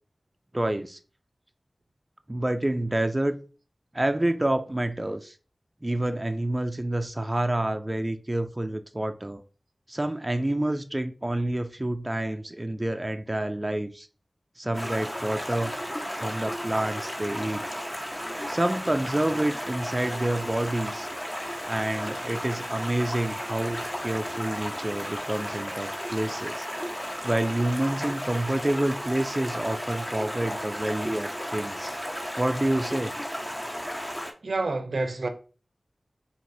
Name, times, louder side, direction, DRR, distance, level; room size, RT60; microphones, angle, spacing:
voice 1, 0.5-1.0 2.3-3.4 3.9-5.3 5.8-9.4 9.9-14.1 14.6-15.7 16.1-17.6 18.5-21.1 21.7-26.7 27.2-31.9 32.4-33.1, right 1 dB, 25° right, 0.3 m, -28 dB
Stream, 14.7-34.3, equal, 20° left, 0.8 m, -34 dB
voice 2, 34.4-35.3, right 3 dB, 85° right, 0.5 m, -28 dB
4.6 x 2.8 x 2.7 m
cardioid pair, 40°, 0 cm